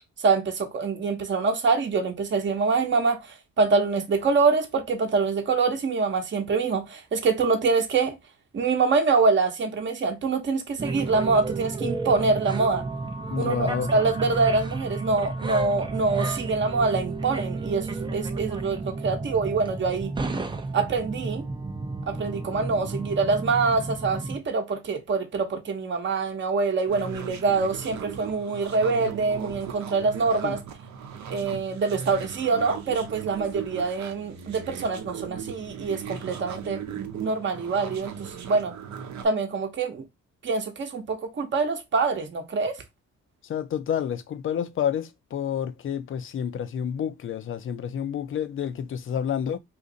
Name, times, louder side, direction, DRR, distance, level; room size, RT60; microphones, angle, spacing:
voice 1, 0.2-3.2 3.6-8.2 8.5-12.8 13.4-20.1 20.7-21.4 22.1-30.6 31.3-38.7 39.2-40.0 40.4-42.7, right 4 dB, 40° right, 0.9 m, -25 dB
sound 1, 10.8-24.4, right 3 dB, 15° right, 0.5 m, -32 dB
voice 2, 13.3-13.9 18.1-18.2 30.4-30.6 43.5-49.6, left 8 dB, 45° left, 0.5 m, -29 dB
sound 2, 26.9-39.2, right 7 dB, 65° right, 0.8 m, -38 dB
2.6 x 2.5 x 3.8 m
cardioid pair, 90°, 30 cm